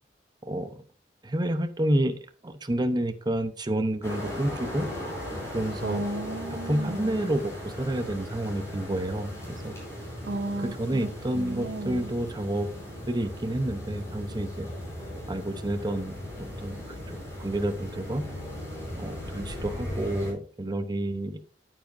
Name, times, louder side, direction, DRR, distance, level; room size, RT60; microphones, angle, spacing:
voice 1, 0.4-0.8 1.2-2.2 2.4-4.9 5.5-6.0 6.7-9.7 10.8-12.7 13.1-14.7 15.3-16.8 17.1-18.2 18.9-21.4, right 1 dB, 25° right, 9 dB, 0.8 m, -29 dB
sound 1, 4.0-20.3, left 1 dB, 15° left, 4.6 m, -37 dB
voice 2, 5.8-7.2 10.2-11.1 11.3-12.1, right 2 dB, 80° right, 2 dB, 1.1 m, -34 dB
9.4 x 9.2 x 2.6 m, 0.38 s
head